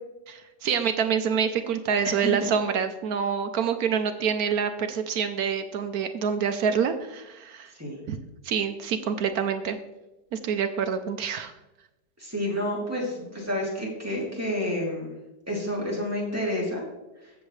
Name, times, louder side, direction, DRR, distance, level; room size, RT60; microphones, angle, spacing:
voice 1, 0.3-7.7 8.1-8.2 8.4-9.8 10.3-11.5, right 7 dB, 65° right, 8 dB, 1.0 m, -26 dB
voice 2, 12.2-15.1 15.5-16.8, left 1 dB, 10° right, -4 dB, 2.8 m, -29 dB
15.5 x 7.2 x 3.2 m, 0.99 s
omnidirectional pair, 1.9 m